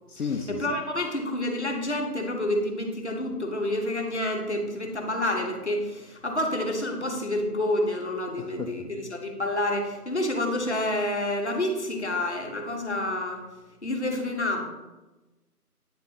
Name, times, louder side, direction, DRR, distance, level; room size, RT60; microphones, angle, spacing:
voice 1, 0.1-0.8 8.4-8.8, left 5 dB, 70° left, 4 dB, 0.6 m, -33 dB
voice 2, 0.6-13.4 13.8-14.7, left 1 dB, 45° left, 2 dB, 0.9 m, -28 dB
8.7 x 4.0 x 2.8 m, 1.1 s
figure-of-eight pair, 180°, 47 cm